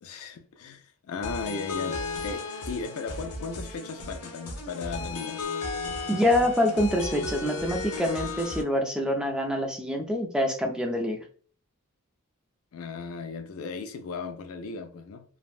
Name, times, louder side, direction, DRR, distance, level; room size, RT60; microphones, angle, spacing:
voice 1, 0.0-5.4 12.7-15.2, left 4 dB, 65° left, 0.4 m, -36 dB
sound 1, 1.2-8.6, left 3 dB, 85° left, 0.8 m, -35 dB
voice 2, 6.1-11.2, left 1 dB, 5° right, 0.4 m, -26 dB
3.3 x 2.1 x 2.4 m
head